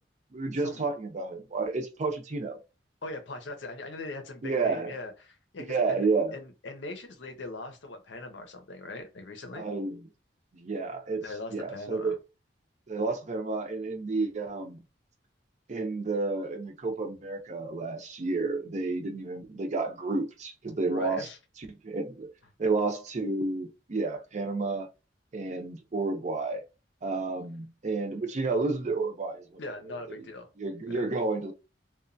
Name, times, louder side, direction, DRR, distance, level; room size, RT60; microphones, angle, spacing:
voice 1, 0.3-2.6 4.4-5.0 5.6-6.3 9.5-10.0 10.5-11.2 11.5-12.2 12.9-14.8 15.7-21.3 21.8-22.3 22.6-24.9 25.3-26.6 27.0-29.4 30.6-31.5, right 3 dB, 40° right, 0.5 m, -30 dB
voice 2, 3.0-9.7 11.2-12.2 20.9-21.4 29.6-30.5 30.9-31.1, left 2 dB, 85° left, 0.7 m, -41 dB
2.9 x 2.2 x 2.5 m
head